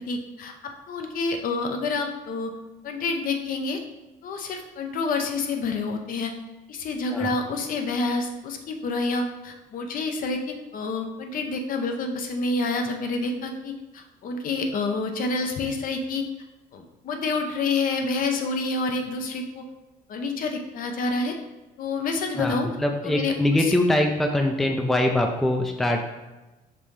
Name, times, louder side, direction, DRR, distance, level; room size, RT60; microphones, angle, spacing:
voice 1, 0.0-2.5 2.8-3.8 4.2-6.3 6.7-16.2 16.7-19.6 20.1-21.4 21.8-22.7 23.0-23.3 23.6-23.8, left 3 dB, 55° left, 4 dB, 0.6 m, -28 dB
voice 2, 22.4-26.0, left 1 dB, ahead, 3 dB, 0.4 m, -23 dB
5.4 x 2.7 x 3.1 m, 1.1 s
cardioid pair, 110°, 17 cm